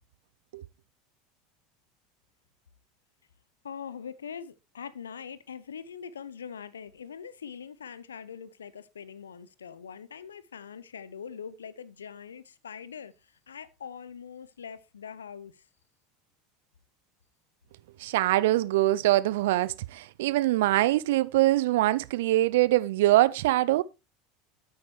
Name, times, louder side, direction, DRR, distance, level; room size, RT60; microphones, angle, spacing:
voice 1, 3.6-15.7, left 7 dB, 80° left, 0.6 m, -43 dB
voice 2, 18.0-23.8, right 16 dB, 70° right, 0.4 m, -23 dB
9.5 x 8.4 x 3.2 m
hypercardioid pair, 80°, 0 cm